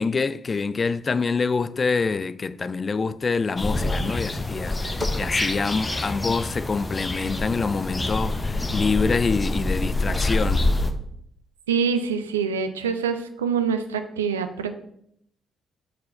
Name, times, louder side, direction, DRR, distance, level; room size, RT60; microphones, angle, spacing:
voice 1, 0.0-10.7, left 4 dB, 35° left, 0.3 m, -26 dB
sound 1, 3.6-10.9, left 2 dB, 20° left, 0.8 m, -26 dB
voice 2, 11.7-14.7, right 6 dB, 85° right, 0.4 m, -25 dB
5.3 x 4.0 x 5.5 m
figure-of-eight pair, 45°, 0 cm